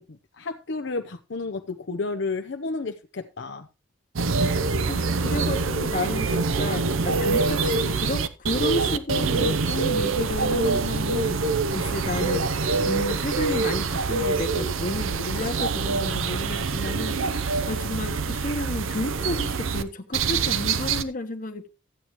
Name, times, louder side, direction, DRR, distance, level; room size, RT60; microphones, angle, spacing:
voice 1, 0.0-3.7, left 3 dB, 65° left, 0.6 m, -32 dB
sound 1, 4.2-19.8 20.1-21.0, right 4 dB, 85° right, 0.7 m, -25 dB
voice 2, 4.9-11.4 11.7-17.2 17.7-21.7, left 2 dB, 40° left, 1.1 m, -31 dB
14.0 x 8.7 x 3.0 m
head